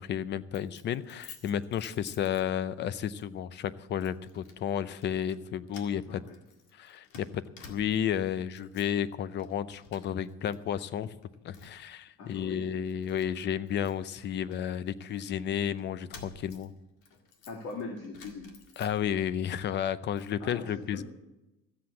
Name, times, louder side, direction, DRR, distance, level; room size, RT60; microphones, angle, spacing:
voice 1, 0.0-6.2 6.7-11.2 11.4-16.7 18.8-21.0, left 9 dB, 40° left, 16 dB, 0.6 m, -32 dB
Keys jangling, 0.5-2.8 3.2-3.4 4.0-4.6 4.9-5.4 5.7-8.2 8.5-9.0 9.4-10.6 10.8-11.9 12.4-12.5 12.9-15.2 15.8-19.3 19.7-20.4, left 5 dB, 85° left, 2.0 m, -53 dB
voice 2, 6.0-6.4 12.2-12.7 17.5-18.5 20.4-21.0, left 4 dB, 55° left, 2 dB, 2.2 m, -41 dB
14.0 x 7.8 x 8.3 m, 0.99 s
cardioid pair, 150°, 29 cm